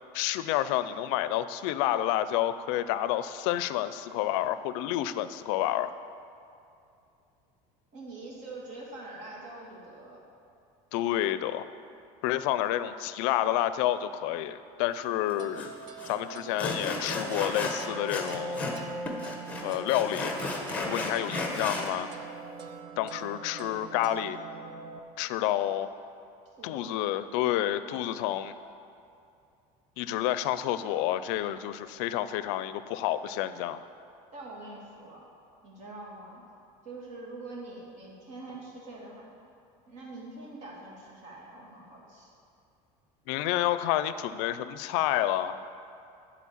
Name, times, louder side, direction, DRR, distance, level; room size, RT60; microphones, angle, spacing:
voice 1, 0.1-5.9 10.9-11.7 12.2-15.7 16.1-18.6 19.6-20.3 20.9-22.1 23.0-24.4 25.2-25.9 26.6-28.5 30.0-33.8 43.3-45.6, left 13 dB, 80° left, 13 dB, 0.4 m, -29 dB
voice 2, 7.9-10.2 26.6-26.9 34.3-35.2 35.6-36.4 36.8-39.3 39.9-42.3, right 2 dB, 55° right, -3 dB, 2.4 m, -44 dB
sound 1, 15.4-25.0, right 3 dB, 30° right, 0.6 m, -41 dB
Sawing, 15.6-15.7 16.0-16.1 16.6-18.8 19.1-21.9, left 2 dB, 10° left, 1.1 m, -33 dB
11.0 x 4.3 x 7.2 m, 2.6 s
cardioid pair, 150°, 15 cm